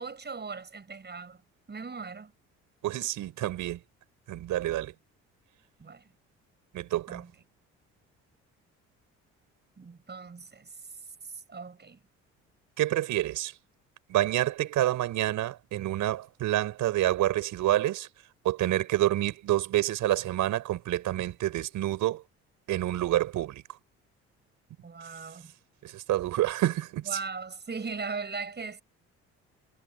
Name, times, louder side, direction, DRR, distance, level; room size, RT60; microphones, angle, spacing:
voice 1, 0.0-1.4 1.7-2.3 5.8-6.1 7.1-7.3 9.8-10.7 11.3-12.0 24.8-25.5 27.1-28.8, right 4 dB, 35° right, 7.1 m, -39 dB
voice 2, 2.8-3.8 4.3-4.9 6.7-7.2 12.8-13.5 14.1-18.1 18.4-22.2 22.7-23.6 25.8-27.2, right 14 dB, 75° right, 4.9 m, -28 dB
supercardioid pair, 75°, 31 cm